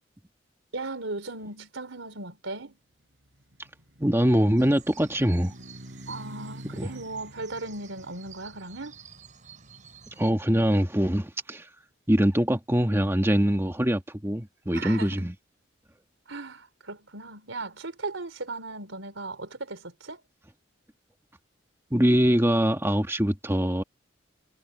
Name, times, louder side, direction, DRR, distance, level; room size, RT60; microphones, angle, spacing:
voice 1, 0.7-2.8 6.1-9.0 14.7-15.3 16.3-20.2, right 3 dB, 85° right, 3.7 m, -37 dB
sound 1, 3.1-11.1, equal, 60° right, 7.0 m, -48 dB
voice 2, 4.0-5.5 6.8-6.9 10.2-11.7 12.1-15.3 21.9-23.8, equal, 15° right, 1.6 m, -23 dB
sound 2, 4.6-10.3, right 6 dB, 40° right, 5.3 m, -51 dB
head